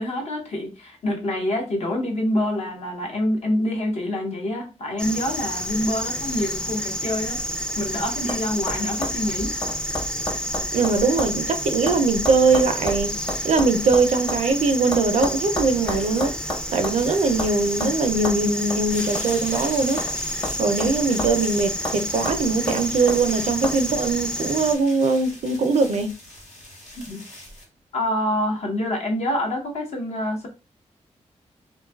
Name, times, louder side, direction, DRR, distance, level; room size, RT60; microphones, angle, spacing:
voice 1, 0.0-7.4 7.8-9.6 27.0-27.2 27.9-30.5, left 1 dB, 65° left, 0.8 m, -26 dB
sound 1, 5.0-24.8, equal, 10° left, 0.4 m, -29 dB
sound 2, 7.5-7.9 8.3-8.4 8.7-11.4 11.6-14.4 14.9-17.0 17.4-17.5 17.8-17.9 18.2-18.4 18.7-18.8 19.1-20.2 20.4-21.5 21.8-22.0 22.3-23.2 23.6-23.8, left 1 dB, 35° left, 1.0 m, -31 dB
voice 2, 10.7-13.2 13.4-16.4 16.7-20.0 20.6-26.1, right 3 dB, 70° right, 0.4 m, -21 dB
sound 3, 17.0-27.6, left 1 dB, 85° left, 1.2 m, -42 dB
2.6 x 2.3 x 2.2 m
cardioid pair, 75°, 12 cm